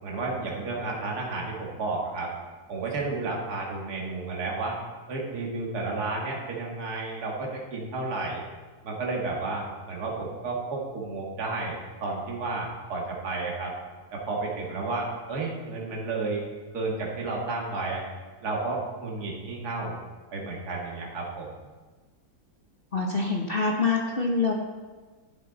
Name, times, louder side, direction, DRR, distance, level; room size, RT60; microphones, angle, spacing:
voice 1, 0.0-2.3 2.7-4.8 5.1-8.4 8.8-13.7 14.1-16.4 16.7-18.0 18.4-20.0 20.3-21.5, right 3 dB, 55° right, -2 dB, 2.4 m, -32 dB
voice 2, 22.9-24.5, left 4 dB, 40° left, 0 dB, 0.9 m, -25 dB
11.0 x 10.0 x 4.0 m, 1.3 s
omnidirectional pair, 2.1 m